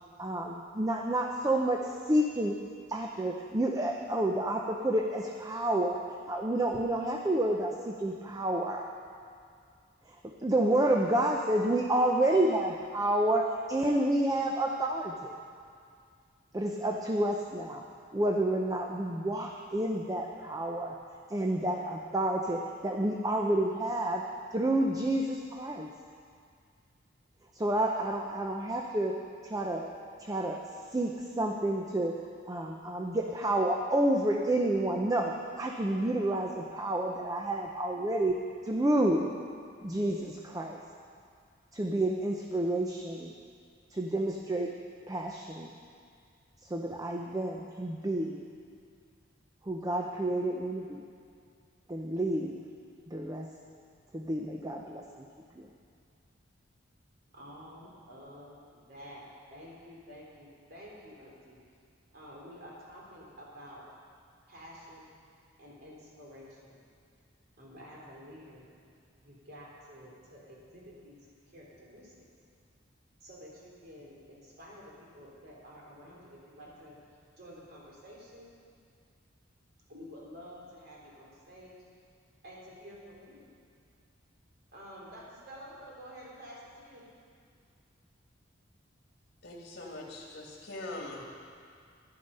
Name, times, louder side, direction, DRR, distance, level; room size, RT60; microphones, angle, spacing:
voice 1, 0.2-2.6 2.9-6.0 6.3-8.9 10.1-10.2 10.4-15.3 16.5-17.8 18.1-20.9 21.3-24.2 24.5-25.9 27.5-29.1 29.4-29.9 30.2-30.6 30.9-32.1 32.5-35.3 35.6-38.3 38.6-39.3 39.8-40.8 41.7-43.3 43.9-44.7 45.1-45.7 46.7-48.4 49.6-51.0 51.9-52.6 53.1-53.5 54.1-55.3 55.6-55.7, right 1 dB, 20° right, 1 dB, 0.6 m, -29 dB
voice 2, 57.3-59.2 59.5-61.6 62.1-63.8 64.5-65.1 65.6-66.8 67.6-68.7 69.2-71.2 71.5-72.3 73.2-77.0 77.4-78.5 79.9-81.8 82.4-83.5 84.7-87.1, equal, 55° right, -4 dB, 3.1 m, -50 dB
voice 3, 89.4-91.4, left 2 dB, 55° left, -2 dB, 2.4 m, -42 dB
12.0 x 10.5 x 5.5 m, 2.3 s
head